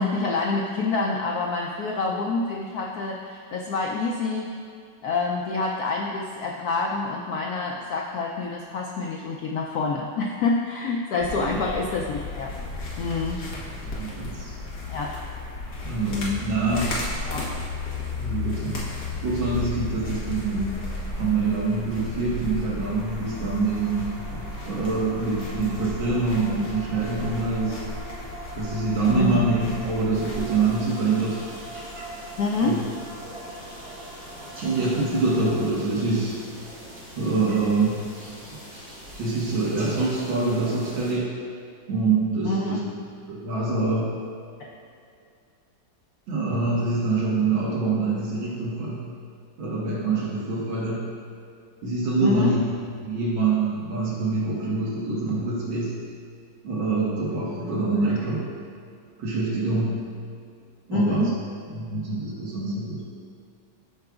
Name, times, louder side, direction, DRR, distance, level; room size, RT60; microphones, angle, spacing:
voice 1, 0.0-4.5 5.0-12.5 13.0-13.4 14.9-15.1 17.2-17.5 29.1-29.5 32.4-32.8 42.4-42.8 52.2-52.5 57.6-57.7 60.9-61.3, left 3 dB, 80° left, -1 dB, 0.8 m, -27 dB
sound 1, 11.2-30.8, left 3 dB, 55° left, 1.6 m, -34 dB
voice 2, 13.8-14.5 15.8-17.0 18.1-18.9 19.2-20.8 21.2-27.8 28.6-29.6 29.8-31.4 32.6-32.8 34.6-36.4 37.2-38.0 39.2-41.3 41.9-42.8 43.3-44.1 46.3-49.1 49.6-51.1 51.8-52.6 53.0-56.0 56.6-58.5 59.2-60.0 60.9-61.3 61.7-63.1, right 3 dB, 85° right, -5 dB, 2.1 m, -25 dB
sound 2, 22.8-35.7, right 1 dB, 65° right, 0.4 m, -42 dB
sound 3, 30.1-41.1, equal, 30° right, 2.0 m, -43 dB
13.0 x 4.7 x 2.4 m, 2.4 s
omnidirectional pair, 2.2 m